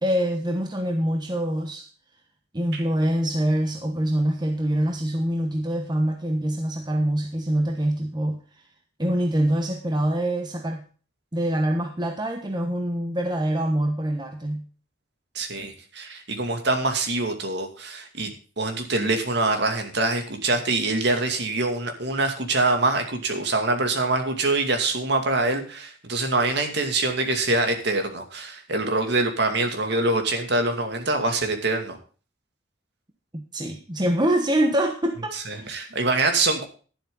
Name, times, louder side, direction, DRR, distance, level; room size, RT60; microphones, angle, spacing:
voice 1, 0.0-1.9 2.5-8.4 9.0-10.8 11.3-14.7 33.3-35.7, right 1 dB, 25° right, 4 dB, 1.2 m, -25 dB
voice 2, 15.3-32.0 35.3-36.7, right 2 dB, 60° right, 5 dB, 2.4 m, -24 dB
11.5 x 11.5 x 3.8 m, 0.38 s
head